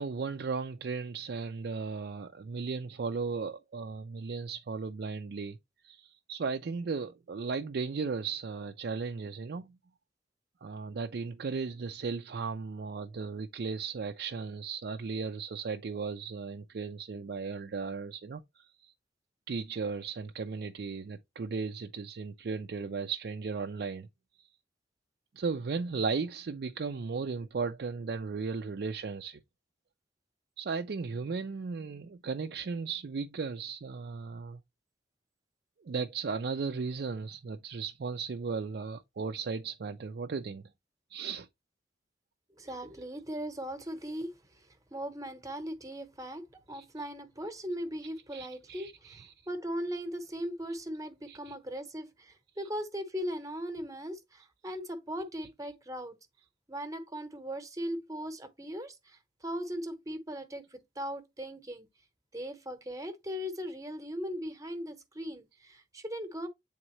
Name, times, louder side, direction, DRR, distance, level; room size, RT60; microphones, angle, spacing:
voice 1, 0.0-5.6 5.8-9.8 10.6-18.9 19.5-24.1 24.4-24.5 25.3-29.4 30.6-34.6 35.8-40.6 41.1-41.5 46.7-46.8 48.3-49.3 51.3-51.5, right 4 dB, 60° right, 0.4 m, -36 dB
voice 2, 42.6-49.2 49.5-56.2 56.7-61.9 62.3-66.5, equal, 20° right, 0.9 m, -39 dB
8.7 x 3.6 x 3.0 m
head